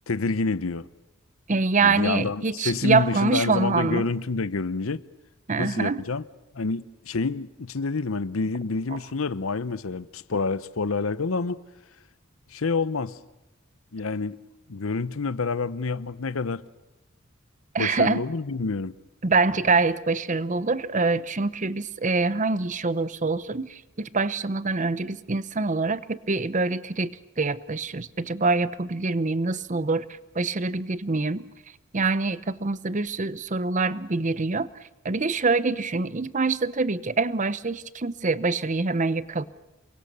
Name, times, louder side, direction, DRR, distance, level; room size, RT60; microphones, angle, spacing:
voice 1, 0.1-0.9 1.8-5.0 5.6-6.2 6.5-11.6 12.5-13.2 13.9-14.4 14.7-16.6 17.8-18.9, left 4 dB, 85° left, 0.8 m, -28 dB
voice 2, 1.5-4.0 5.5-6.0 17.7-18.2 19.2-30.0 30.3-31.4 31.9-34.7 35.0-39.4, right 3 dB, 35° right, 0.8 m, -25 dB
28.5 x 23.5 x 6.8 m
head